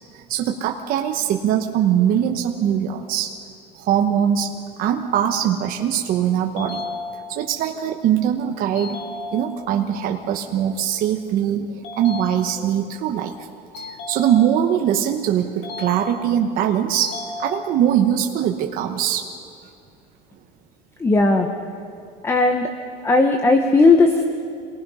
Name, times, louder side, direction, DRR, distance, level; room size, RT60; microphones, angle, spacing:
voice 1, 0.1-3.3 3.7-6.9 7.3-9.0 9.3-13.3 13.8-19.3, right 9 dB, 45° right, 3 dB, 1.1 m, -22 dB
sound 1, 6.6-7.6 8.8-9.8 11.8-12.9 13.7-14.8 15.6-16.5 17.0-18.0, left 3 dB, 65° left, 3.3 m, -34 dB
voice 2, 21.0-21.5 22.2-22.7 23.0-24.2, left 3 dB, 15° left, 5 dB, 1.0 m, -16 dB
27.5 x 19.0 x 5.6 m, 2.5 s
cardioid pair, 160°, 20 cm